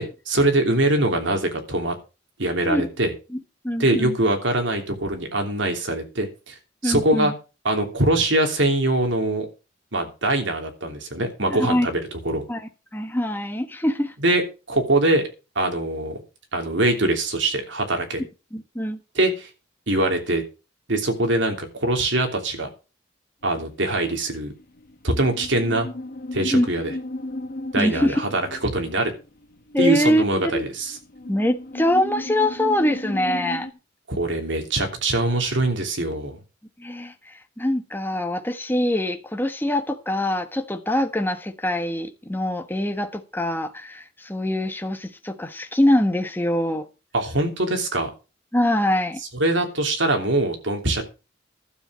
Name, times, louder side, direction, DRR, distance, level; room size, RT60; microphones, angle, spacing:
voice 1, 0.0-1.9 2.4-3.1 3.8-6.5 6.8-7.3 7.6-9.5 9.9-12.0 12.2-12.4 14.2-14.4 14.7-15.3 15.5-16.2 16.5-18.2 19.1-19.5 19.9-20.4 20.9-22.7 23.4-24.5 25.0-25.9 26.3-26.9 27.7-29.1 29.8-31.0 34.1-36.4 47.1-48.1 49.4-51.0, right 2 dB, 70° right, 4 dB, 3.1 m, -23 dB
voice 2, 3.6-4.1 6.8-7.3 11.5-11.9 12.5-14.1 18.5-19.0 26.5-26.7 27.8-28.2 29.7-30.6 31.3-33.7 36.8-37.1 37.6-46.9 48.5-49.2, left 1 dB, 10° left, 6 dB, 1.3 m, -23 dB
sound 1, 23.6-33.7, left 2 dB, 50° left, 1.1 m, -35 dB
12.5 x 7.6 x 6.3 m, 0.31 s
head